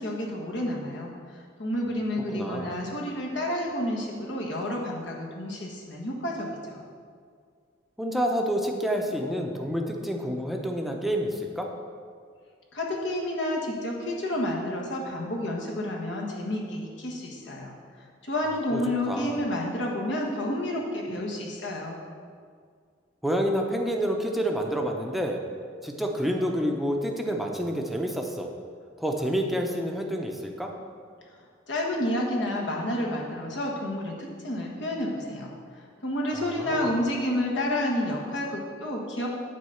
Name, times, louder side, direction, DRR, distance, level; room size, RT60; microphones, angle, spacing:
voice 1, 0.0-6.8 12.7-17.7 18.2-22.0 31.7-39.3, left 1 dB, 70° left, -2 dB, 1.6 m, -30 dB
voice 2, 2.3-2.7 8.0-11.7 18.7-18.8 19.1-19.4 23.2-25.4 25.8-28.5 29.0-30.7 36.3-36.9, equal, ahead, 2 dB, 0.7 m, -28 dB
9.5 x 4.0 x 7.0 m, 2.1 s
head